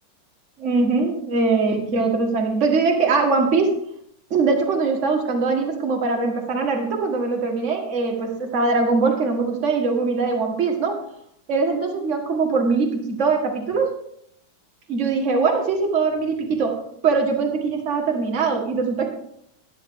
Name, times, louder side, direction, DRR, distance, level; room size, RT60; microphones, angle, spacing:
voice 1, 0.6-3.8 4.3-11.0 11.5-13.9 14.9-19.1, right 4 dB, 40° right, 2 dB, 1.1 m, -22 dB
12.0 x 11.0 x 3.6 m, 0.71 s
omnidirectional pair, 3.6 m